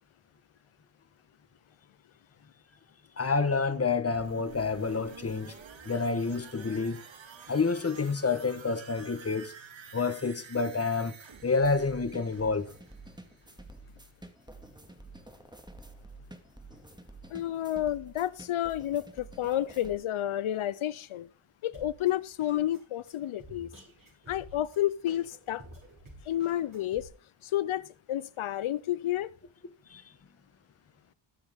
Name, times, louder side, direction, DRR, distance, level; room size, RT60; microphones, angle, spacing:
voice 1, 3.2-5.6 5.8-7.0 7.5-9.5 9.9-11.1 11.4-12.7 29.9-30.0, left 4 dB, 30° left, 1.2 m, -28 dB
sound 1, 4.1-13.8 14.1-14.2, right 5 dB, 65° right, 2.3 m, -50 dB
sound 2, 11.6-20.0, right 2 dB, 10° right, 2.2 m, -50 dB
voice 2, 17.3-21.3 21.6-23.7 24.3-25.6 26.2-27.1 27.4-29.3, left 12 dB, 85° left, 0.6 m, -30 dB
Drum kit, 21.7-27.1, right 1 dB, 40° right, 6.3 m, -52 dB
20.5 x 7.1 x 3.6 m
wide cardioid pair, 90°, 48 cm